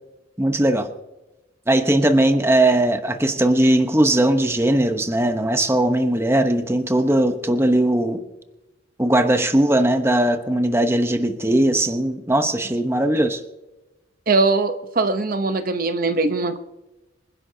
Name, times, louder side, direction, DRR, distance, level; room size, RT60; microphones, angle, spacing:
voice 1, 0.4-0.9 1.7-8.2 9.0-13.4, right 1 dB, 15° right, 7 dB, 0.9 m, -19 dB
voice 2, 14.3-16.6, right 3 dB, 50° right, 9 dB, 0.8 m, -21 dB
27.0 x 11.0 x 2.8 m, 1.0 s
head